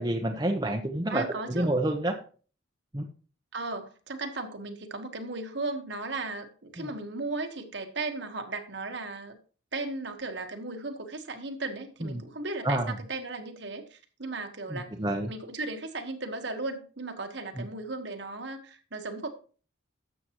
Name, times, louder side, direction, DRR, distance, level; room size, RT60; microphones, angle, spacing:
voice 1, 0.0-2.2 2.9-3.0 6.8-6.9 12.0-12.2 12.6-12.9 14.7-15.3 17.6-17.7, right 1 dB, 20° right, 2 dB, 0.8 m, -29 dB
voice 2, 1.1-1.7 3.5-9.3 9.7-14.9 15.3-19.3, right 3 dB, 60° right, 6 dB, 1.3 m, -36 dB
12.5 x 7.6 x 3.0 m, 0.38 s
head